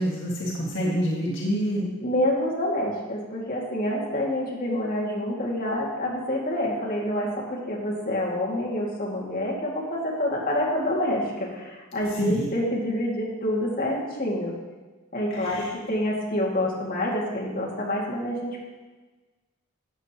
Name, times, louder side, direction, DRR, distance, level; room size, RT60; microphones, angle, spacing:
voice 1, 0.0-1.9 12.1-12.5 15.3-15.7, equal, 65° left, -5 dB, 1.9 m, -27 dB
voice 2, 2.0-14.5 15.1-18.6, left 1 dB, 45° left, -4 dB, 2.1 m, -27 dB
13.0 x 8.4 x 3.0 m, 1.3 s
head